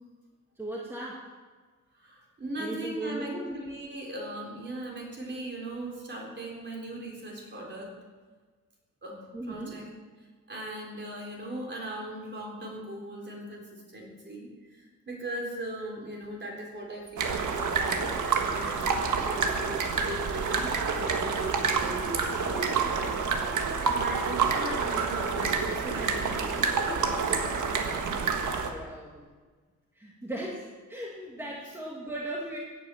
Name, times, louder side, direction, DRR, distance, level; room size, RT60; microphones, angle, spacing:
voice 1, 0.6-1.3 2.6-3.6 9.3-9.8 28.6-29.3 30.0-32.6, right 1 dB, 10° right, -3 dB, 1.8 m, -37 dB
voice 2, 1.9-8.0 9.0-9.9 10.5-19.0 19.2-27.1 31.4-31.5, right 1 dB, 35° right, -2 dB, 4.0 m, -39 dB
sound 1, 17.2-28.7, right 5 dB, 75° right, 1.6 m, -28 dB
16.5 x 8.7 x 7.1 m, 1.4 s
wide cardioid pair, 160°, 31 cm